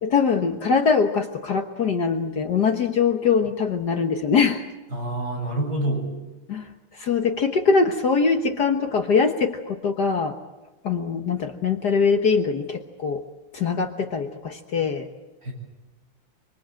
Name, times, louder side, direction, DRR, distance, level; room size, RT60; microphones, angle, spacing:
voice 1, 0.0-4.7 6.5-6.7 7.0-10.3 10.8-13.2 13.5-15.1, left 5 dB, 55° left, 6 dB, 1.7 m, -22 dB
voice 2, 4.9-6.1 15.4-15.5, right 1 dB, 45° right, -1 dB, 8.5 m, -27 dB
26.0 x 25.0 x 7.8 m, 1.1 s
omnidirectional pair, 2.3 m